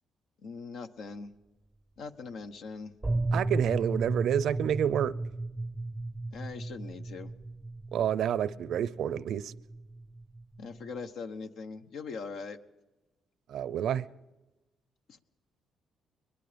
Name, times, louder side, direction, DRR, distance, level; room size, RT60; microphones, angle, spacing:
voice 1, 0.4-1.3 2.0-2.9 6.3-7.3 10.6-12.6 15.1-15.2, left 4 dB, 70° left, 1.2 m, -41 dB
sound 1, 3.0-11.1, right 2 dB, 10° right, 0.6 m, -35 dB
voice 2, 3.3-5.1 7.9-9.5 13.5-14.1, right 9 dB, 70° right, 0.6 m, -29 dB
23.0 x 21.5 x 5.2 m
cardioid pair, 90°, 0 cm